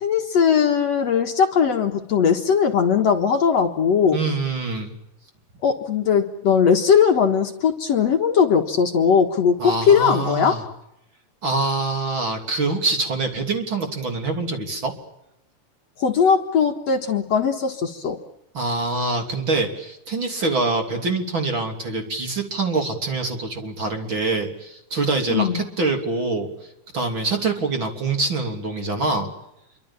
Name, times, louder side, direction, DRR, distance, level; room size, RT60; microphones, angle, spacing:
voice 1, 0.0-4.2 5.6-10.6 16.0-18.2 25.3-25.6, left 7 dB, 55° left, 4 dB, 2.5 m, -19 dB
voice 2, 4.1-4.9 9.6-10.6 11.4-14.9 18.5-26.5 26.9-29.3, right 3 dB, 35° right, 4 dB, 3.6 m, -25 dB
27.5 x 24.5 x 7.2 m, 0.83 s
omnidirectional pair, 3.9 m